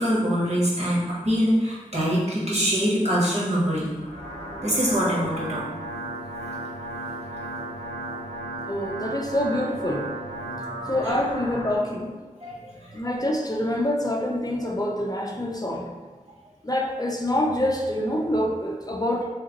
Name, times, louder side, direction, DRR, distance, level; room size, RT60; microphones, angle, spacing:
voice 1, 0.0-3.9 4.6-5.7 8.0-8.1 12.4-12.7, equal, 55° right, -6 dB, 1.3 m, -24 dB
sound 1, 3.8-11.8, right 1 dB, 90° right, 0.8 m, -35 dB
voice 2, 8.7-10.1 10.8-12.1 12.9-15.9 16.6-19.3, left 1 dB, 30° left, 0 dB, 0.5 m, -26 dB
3.2 x 2.8 x 3.8 m, 1.4 s
wide cardioid pair, 45°, 13 cm